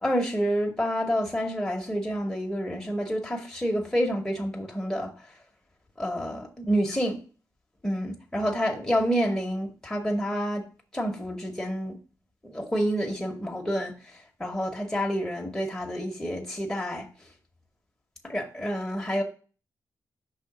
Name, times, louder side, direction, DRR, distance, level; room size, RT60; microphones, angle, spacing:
voice 1, 0.0-5.1 6.0-7.2 7.8-10.6 10.9-12.0 12.4-13.9 14.4-17.1 18.2-19.2, equal, 10° left, 0 dB, 0.9 m, -28 dB
5.6 x 3.4 x 5.7 m, 0.37 s
wide cardioid pair, 125°, 7 cm